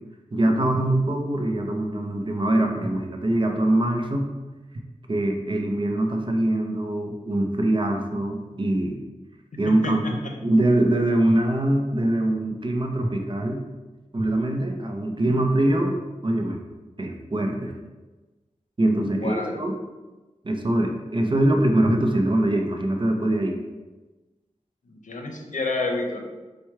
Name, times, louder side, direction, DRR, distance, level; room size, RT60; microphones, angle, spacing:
voice 1, 0.3-4.3 5.1-9.0 9.6-13.6 14.1-16.0 16.2-16.6 17.0-17.7 18.8-19.7 20.4-23.6, right 1 dB, 40° right, 3 dB, 0.6 m, -23 dB
voice 2, 9.8-10.3 19.1-19.5 24.8-26.2, left 2 dB, 85° left, 2 dB, 0.6 m, -29 dB
4.5 x 2.2 x 4.6 m, 1.2 s
wide cardioid pair, 55°, 13 cm